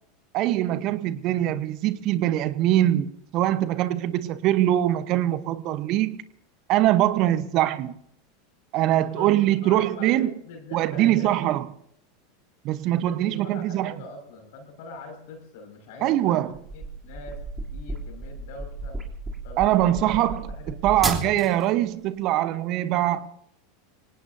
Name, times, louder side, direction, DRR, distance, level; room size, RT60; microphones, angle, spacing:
voice 1, 0.3-6.2 6.7-7.9 8.7-10.3 10.7-11.7 12.6-13.9 16.0-16.5 19.6-20.4 20.8-23.3, right 13 dB, 50° right, 1.1 m, -23 dB
voice 2, 8.9-11.5 12.9-17.4 17.7-19.0 19.4-20.2 20.5-21.7, left 2 dB, 65° left, 6.0 m, -43 dB
sound 1, 16.5-21.7, right 2 dB, 20° right, 3.3 m, -33 dB
25.5 x 18.0 x 2.8 m
hypercardioid pair, 85°, 0 cm